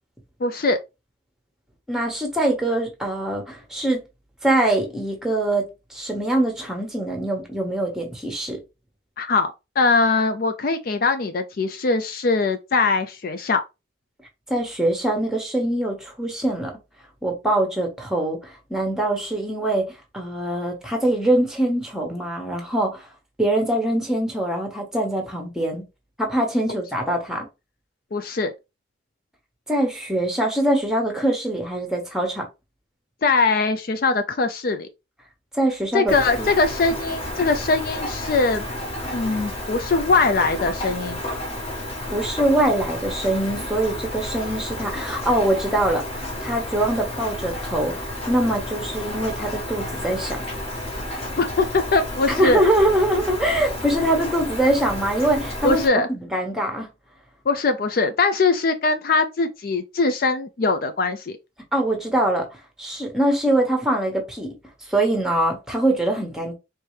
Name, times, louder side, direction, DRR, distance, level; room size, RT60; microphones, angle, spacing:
voice 1, 0.4-0.8 9.2-13.6 26.7-26.8 28.1-28.5 33.2-34.9 35.9-38.6 39.1-41.2 51.4-52.6 55.6-56.1 57.5-61.3, left 3 dB, 50° left, 0.4 m, -21 dB
voice 2, 1.9-4.0 4.4-8.6 14.5-16.7 17.2-23.0 23.4-25.8 26.2-27.5 29.7-32.5 35.5-36.5 42.1-46.0 46.4-50.4 52.3-55.8 56.1-56.9 61.7-64.5 64.9-66.5, right 1 dB, 5° right, 1.1 m, -23 dB
Rain, 36.1-55.9, left 1 dB, 30° left, 1.4 m, -31 dB
4.5 x 3.2 x 3.2 m
head